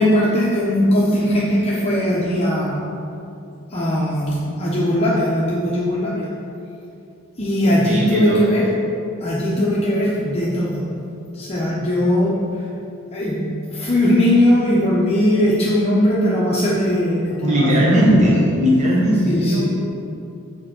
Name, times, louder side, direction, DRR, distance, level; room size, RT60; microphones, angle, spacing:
voice 1, 0.0-2.8 3.7-6.3 7.4-8.7 9.2-10.8 11.3-12.4 13.1-18.4 19.3-19.7, left 1 dB, 30° left, -6 dB, 0.8 m, -19 dB
voice 2, 7.6-8.4 17.4-19.6, equal, 30° right, -5 dB, 1.1 m, -17 dB
7.4 x 4.5 x 6.1 m, 2.6 s
head